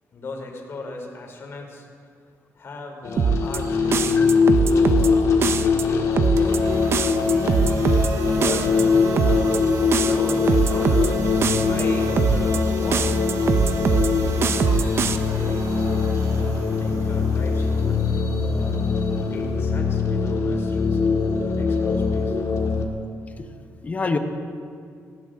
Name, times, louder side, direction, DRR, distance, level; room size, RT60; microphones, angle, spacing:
voice 1, 0.1-1.8 2.6-7.5 8.4-8.7 9.2-9.6 10.0-14.3 15.2-19.0 19.3-21.0 21.4-22.4, left 2 dB, 45° left, 2 dB, 3.0 m, -38 dB
sound 1, 3.0-22.9, left 4 dB, 70° left, 1.8 m, -22 dB
sound 2, 3.2-3.6 3.9-5.1 5.4-5.8 6.2-6.6 6.9-8.1 8.4-8.8 9.2-9.6 9.9-11.1 11.4-11.8 12.2-12.6 12.9-14.1 14.4-15.2, right 6 dB, 45° right, 0.7 m, -21 dB
sound 3, 6.3-20.3, right 4 dB, 70° right, 1.7 m, -39 dB
voice 2, 8.7-9.0 23.4-23.5 23.8-24.2, left 4 dB, 25° left, 7 dB, 1.1 m, -27 dB
19.0 x 17.0 x 3.8 m, 2.3 s
cardioid pair, 135°, 6 cm